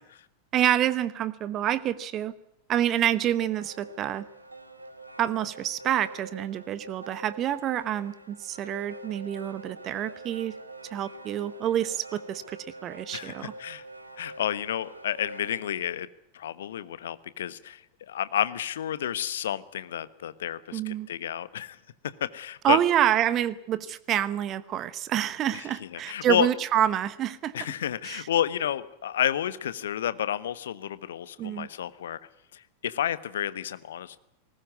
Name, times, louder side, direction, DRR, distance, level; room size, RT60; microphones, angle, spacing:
voice 1, 0.5-2.3 2.7-4.2 5.2-10.5 10.9-13.5 20.7-21.1 22.6-27.5 28.0-28.3 31.4-31.7, right 11 dB, 30° right, 17 dB, 1.0 m, -27 dB
sound 1, 3.1-15.7, right 2 dB, 80° right, 2.2 m, -45 dB
voice 2, 13.1-13.8 14.2-16.1 16.3-17.8 18.1-21.8 22.2-22.8 25.8-26.5 27.5-32.2 32.5-34.2, left 10 dB, 60° left, 16 dB, 1.1 m, -30 dB
19.5 x 19.5 x 9.5 m, 0.78 s
figure-of-eight pair, 90°, 0 cm